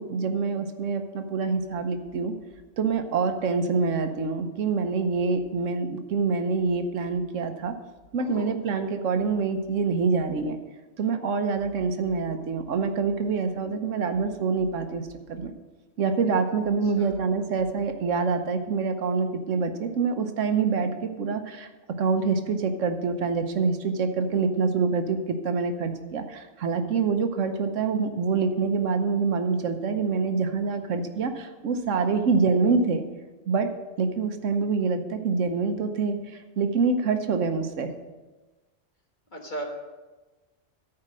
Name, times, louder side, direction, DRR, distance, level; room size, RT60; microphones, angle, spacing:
voice 1, 0.0-2.3 2.8-7.7 8.1-10.6 11.0-15.5 16.0-21.7 22.0-33.0 33.5-33.7 34.0-37.9, right 4 dB, 80° right, 8 dB, 1.2 m, -26 dB
voice 2, 8.2-8.5 17.0-17.1 32.1-32.2 39.3-39.6, right 1 dB, 40° left, 1 dB, 1.5 m, -37 dB
13.0 x 4.8 x 6.2 m, 1.2 s
omnidirectional pair, 1.3 m